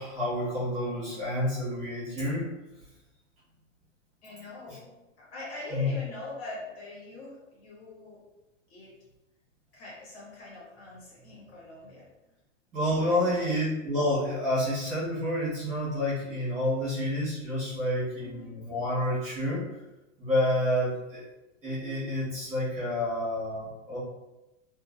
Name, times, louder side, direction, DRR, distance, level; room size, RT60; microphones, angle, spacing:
voice 1, 0.0-2.5 4.7-4.8 5.7-5.9 12.7-19.6 20.2-21.3 21.6-24.0, left 1 dB, 20° right, -10 dB, 1.1 m, -29 dB
voice 2, 4.2-8.2 8.7-9.0 9.7-12.1 13.1-13.5 18.2-18.6, left 2 dB, 50° left, -6 dB, 1.4 m, -43 dB
2.7 x 2.4 x 2.5 m, 1.0 s
hypercardioid pair, 155°, 38 cm